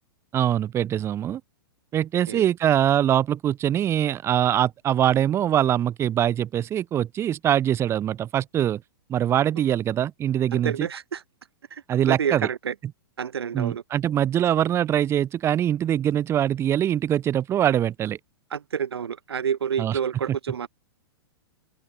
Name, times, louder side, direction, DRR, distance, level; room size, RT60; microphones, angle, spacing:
voice 1, 0.3-1.4 1.9-8.8 9.1-10.9 11.9-12.5 13.5-18.2 19.8-20.0, right 10 dB, 20° right, 0.5 m, -23 dB
voice 2, 10.5-11.2 11.7-12.7 13.2-13.8 18.5-20.7, right 7 dB, 85° right, 0.4 m, -29 dB
open air
hypercardioid pair, 110°, 13 cm